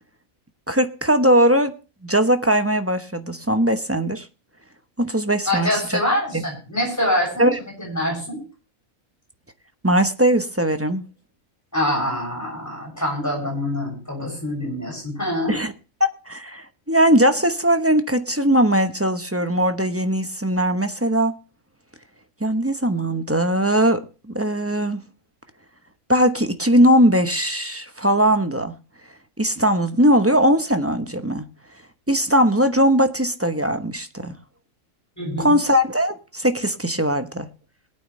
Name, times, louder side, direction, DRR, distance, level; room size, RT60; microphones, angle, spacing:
voice 1, 0.7-1.7 2.0-4.3 5.0-6.0 6.3-6.4 7.4-7.6 9.8-11.0 15.5-15.7 16.0-21.3 22.4-25.0 26.1-28.7 29.4-31.4 32.1-34.4 35.4-37.5, equal, 10° right, 9 dB, 0.9 m, -20 dB
voice 2, 5.5-7.5 7.8-8.4 11.7-15.6 35.2-35.5, left 1 dB, 10° left, -1 dB, 7.0 m, -25 dB
21.5 x 9.0 x 3.2 m, 0.35 s
omnidirectional pair, 1.4 m